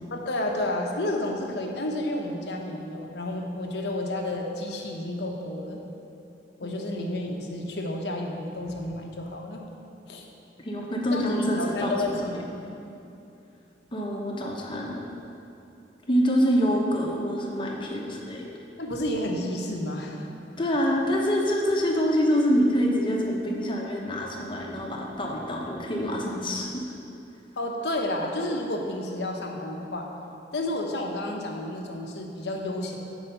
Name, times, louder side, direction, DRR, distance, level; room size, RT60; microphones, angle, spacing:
voice 1, 0.1-5.8 6.6-9.6 10.1-10.3 11.1-11.3 11.6-12.8 18.8-20.3 27.6-30.1 30.5-33.0, left 1 dB, 70° left, 1 dB, 0.9 m, -31 dB
voice 2, 6.6-7.0 10.6-12.0 13.9-15.1 16.1-18.5 20.6-26.8, equal, 30° left, -1 dB, 0.9 m, -26 dB
8.3 x 4.9 x 5.5 m, 2.7 s
head